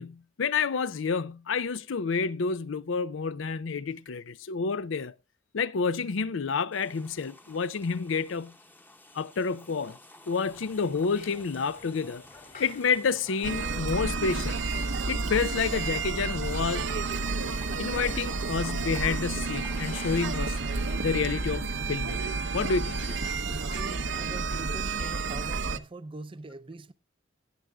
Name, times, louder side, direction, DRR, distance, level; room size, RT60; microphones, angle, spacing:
voice 1, 0.0-5.1 5.5-8.5 9.1-10.0 10.3-12.2 12.6-14.6 15.1-16.9 17.8-20.6 21.0-23.0, left 5 dB, 75° left, 0.5 m, -29 dB
sound 1, 6.7-21.9, left 1 dB, 10° left, 0.9 m, -50 dB
sound 2, 10.4-25.8, left 4 dB, 45° left, 2.5 m, -50 dB
sound 3, 13.4-25.8, right 4 dB, 65° right, 0.8 m, -31 dB
voice 2, 23.6-26.9, right 2 dB, 25° right, 0.5 m, -43 dB
17.0 x 9.0 x 2.3 m
head